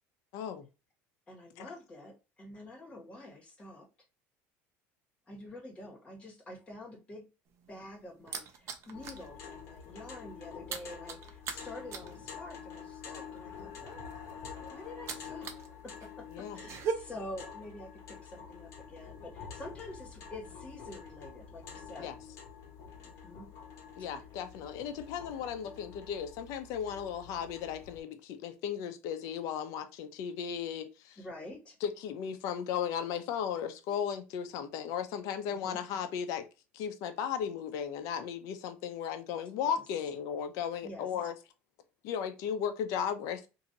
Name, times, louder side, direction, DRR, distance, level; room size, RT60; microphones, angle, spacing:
voice 1, 0.3-0.7 1.6-1.7 16.3-16.6 22.0-22.1 24.0-31.2 31.8-36.5 36.7-41.3 42.0-43.5, left 8 dB, 70° left, 0.7 m, -36 dB
voice 2, 1.3-3.9 5.3-7.3 7.7-14.1 14.7-15.6 15.8-22.1 23.0-23.5 31.2-31.8 35.5-35.8 39.6-39.8 40.8-41.1, left 1 dB, 20° left, 1.6 m, -47 dB
sound 1, 7.5-9.3 9.6-9.9 10.1-15.7 16.0-16.9, right 6 dB, 50° right, 0.7 m, -40 dB
sound 2, 8.9-28.0, left 6 dB, 55° left, 1.5 m, -48 dB
2.8 x 2.7 x 3.8 m
cardioid pair, 130°, 6 cm